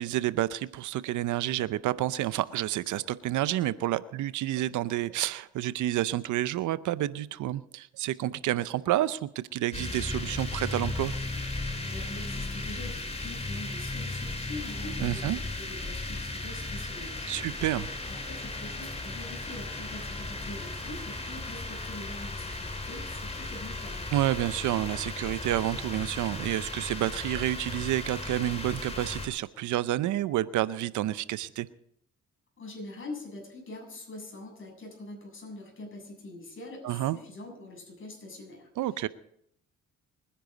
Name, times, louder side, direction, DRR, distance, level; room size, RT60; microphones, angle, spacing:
voice 1, 0.0-11.1 15.0-15.4 17.3-17.9 24.1-31.7 36.8-37.2 38.8-39.1, right 14 dB, 80° right, 16 dB, 0.6 m, -29 dB
sound 1, 9.7-29.3, left 2 dB, 20° left, 3.3 m, -36 dB
voice 2, 11.9-17.5 18.1-24.1 32.6-39.1, left 2 dB, 40° left, 1 dB, 7.5 m, -44 dB
25.0 x 10.5 x 4.0 m, 0.72 s
cardioid pair, 90°, 30 cm